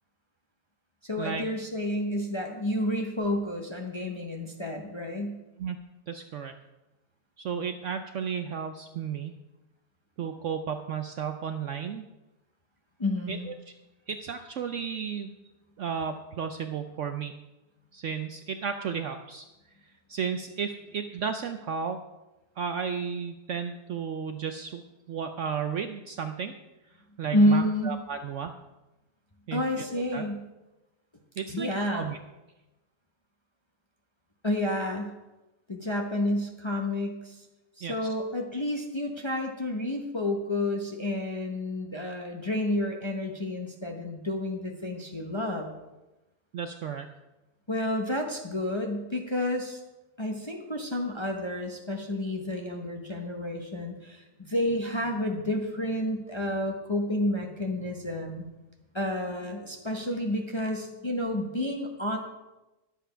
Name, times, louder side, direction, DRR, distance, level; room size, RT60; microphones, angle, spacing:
voice 1, 1.0-5.4 13.0-13.5 27.3-28.0 29.5-30.4 31.5-32.1 34.4-35.1 35.7-37.4 37.8-45.7 47.7-49.8 50.2-58.5 58.9-62.2, left 1 dB, 25° left, 1 dB, 0.8 m, -30 dB
voice 2, 6.1-6.5 7.4-9.3 10.2-12.0 13.3-13.5 14.1-15.3 15.8-17.3 17.9-19.5 20.1-22.0 22.6-24.8 25.1-26.5 27.2-28.5 29.5-30.2 31.4-31.7 31.9-32.2 37.8-38.1 46.5-47.1, right 7 dB, 65° right, 7 dB, 0.8 m, -33 dB
11.0 x 7.5 x 5.6 m, 1.0 s
omnidirectional pair, 1.7 m